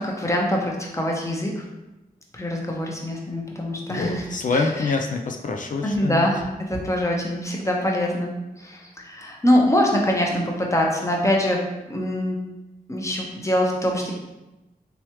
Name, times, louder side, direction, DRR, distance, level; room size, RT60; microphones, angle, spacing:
voice 1, 0.0-1.6 2.3-4.2 5.8-8.3 8.6-11.6 11.9-12.4 12.9-14.1, left 1 dB, 20° left, -1 dB, 0.8 m, -23 dB
voice 2, 3.9-6.3, left 4 dB, 55° left, 3 dB, 0.4 m, -26 dB
3.4 x 3.1 x 3.0 m, 1.0 s
cardioid pair, 60°, 16 cm